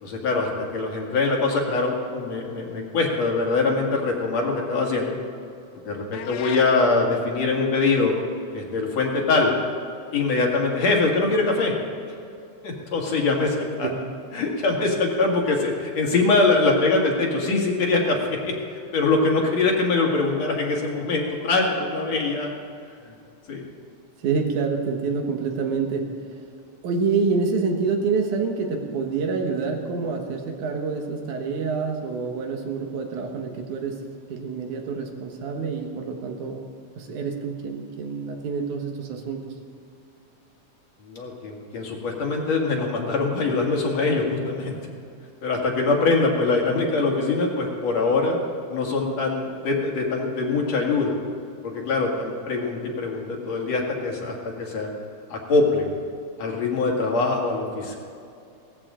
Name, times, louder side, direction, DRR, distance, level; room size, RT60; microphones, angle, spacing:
voice 1, 0.0-5.2 5.9-8.1 8.5-9.5 10.1-11.7 12.6-13.9 14.3-18.2 18.4-22.5 23.1-23.2 23.5-23.6 41.0-44.8 45.4-48.4 48.7-51.2 51.6-54.9 55.3-55.9 56.4-58.0, left 3 dB, 65° left, -1 dB, 3.1 m, -23 dB
sound 1, 6.1-6.8, left 10 dB, 85° left, 2.1 m, -35 dB
voice 2, 24.2-26.4 26.8-34.0 34.3-36.6 37.0-39.5, right 4 dB, 85° right, 3 dB, 2.9 m, -27 dB
17.5 x 14.5 x 3.8 m, 2.5 s
omnidirectional pair, 3.3 m